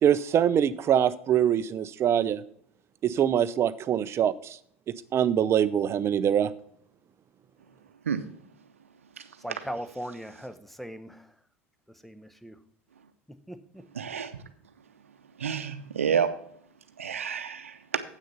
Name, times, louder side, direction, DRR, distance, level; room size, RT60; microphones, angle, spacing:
voice 1, 0.0-2.4 3.0-4.6 4.9-6.5, right 9 dB, 40° right, 16 dB, 0.6 m, -24 dB
voice 2, 9.4-11.3 11.9-12.6 13.5-13.9, equal, ahead, 11 dB, 0.9 m, -39 dB
voice 3, 13.9-14.4 15.4-16.3 17.0-18.0, right 7 dB, 85° right, 10 dB, 0.8 m, -29 dB
8.4 x 6.4 x 5.5 m, 0.64 s
hypercardioid pair, 70°, 7 cm